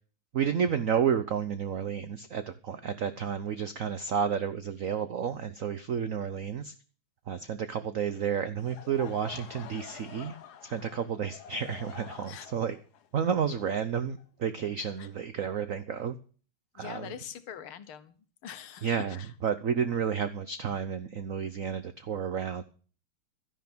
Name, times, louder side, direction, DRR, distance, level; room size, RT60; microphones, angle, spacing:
voice 1, 0.3-6.7 7.3-10.4 10.6-12.8 13.1-16.2 16.7-17.1 18.8-22.6, right 7 dB, 55° right, 0.9 m, -31 dB
Laughter / Crowd, 8.6-14.5, left 9 dB, 55° left, 1.3 m, -48 dB
voice 2, 16.8-18.2 18.4-19.3, left 9 dB, 75° left, 2.0 m, -43 dB
13.0 x 11.0 x 6.1 m
omnidirectional pair, 2.4 m